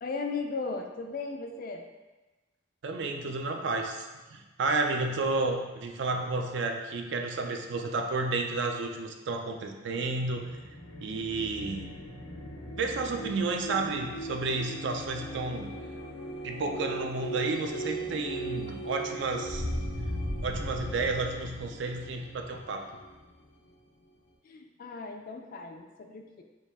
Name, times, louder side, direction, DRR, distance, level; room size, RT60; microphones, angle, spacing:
voice 1, 0.0-1.8 24.4-26.4, left 4 dB, 45° left, 4 dB, 0.3 m, -36 dB
voice 2, 2.8-10.5 11.0-11.9 12.8-15.7 16.4-19.6 20.4-22.9, right 3 dB, 60° right, 3 dB, 0.4 m, -31 dB
sound 1, 10.3-23.7, right 1 dB, 85° left, 0.6 m, -38 dB
4.6 x 2.3 x 3.4 m, 1.2 s
head